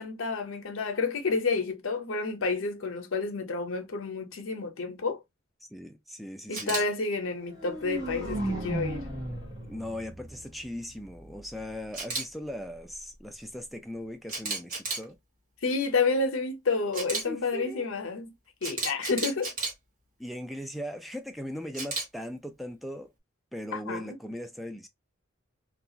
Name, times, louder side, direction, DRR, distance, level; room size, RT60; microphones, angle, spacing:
voice 1, 0.0-5.2 6.5-9.1 15.6-18.3 18.6-19.5 23.7-24.2, left 4 dB, 65° left, 0.7 m, -30 dB
voice 2, 5.7-6.8 9.7-15.2 17.3-17.9 20.2-23.1 23.5-24.9, equal, ahead, 0.3 m, -39 dB
Camera, 6.5-6.8 11.9-12.2 14.3-15.0 16.9-17.2 18.6-19.7 21.7-22.0, right 3 dB, 40° right, 1.2 m, -32 dB
sound 1, 7.4-11.4, right 1 dB, 20° right, 1.0 m, -35 dB
2.4 x 2.3 x 2.7 m
head